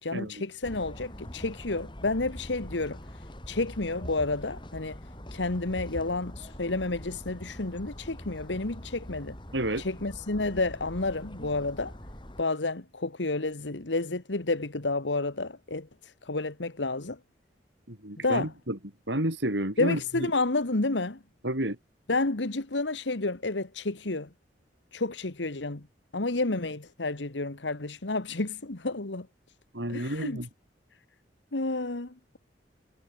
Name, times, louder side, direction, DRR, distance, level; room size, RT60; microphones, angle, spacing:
voice 1, 0.0-5.0 5.3-9.4 9.8-11.9 12.4-17.2 18.2-18.5 19.8-21.2 22.1-24.3 24.9-25.9 26.1-29.3 29.9-30.4 31.5-32.4, left 2 dB, 90° left, 1.7 m, -30 dB
sound 1, 0.6-12.4, equal, 25° left, 5.7 m, -43 dB
voice 2, 9.5-9.8 17.9-18.8 19.1-20.3 21.4-21.8 29.7-30.5, right 1 dB, 85° right, 6.2 m, -30 dB
head